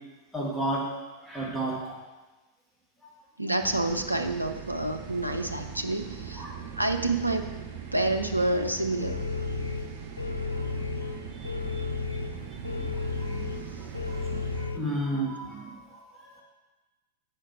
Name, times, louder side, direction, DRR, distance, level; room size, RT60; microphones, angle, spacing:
voice 1, 0.3-0.9 1.2-2.0 6.4-6.5 11.3-11.7 12.8-13.5 13.9-16.4, right 1 dB, 5° left, -5 dB, 1.5 m, -33 dB
voice 2, 3.4-6.5 6.8-7.6 7.9-9.2, right 2 dB, 85° right, 5 dB, 0.4 m, -28 dB
sound 1, 3.6-14.7, right 7 dB, 50° right, 0.8 m, -41 dB
sound 2, 9.0-14.8, left 4 dB, 80° left, 0.3 m, -33 dB
7.4 x 5.1 x 4.5 m, 1.2 s
figure-of-eight pair, 90°, 0 cm